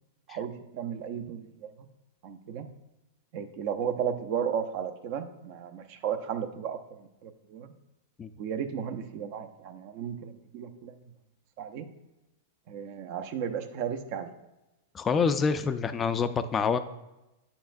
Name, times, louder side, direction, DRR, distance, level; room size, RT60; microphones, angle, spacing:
voice 1, 0.3-1.9 2.2-2.7 3.3-7.7 8.4-11.0 11.6-11.9 12.7-14.3, right 8 dB, 50° right, 8 dB, 0.6 m, -34 dB
voice 2, 14.9-16.8, left 5 dB, 20° left, 10 dB, 0.3 m, -26 dB
9.0 x 7.2 x 2.6 m, 0.97 s
hypercardioid pair, 130°, 0 cm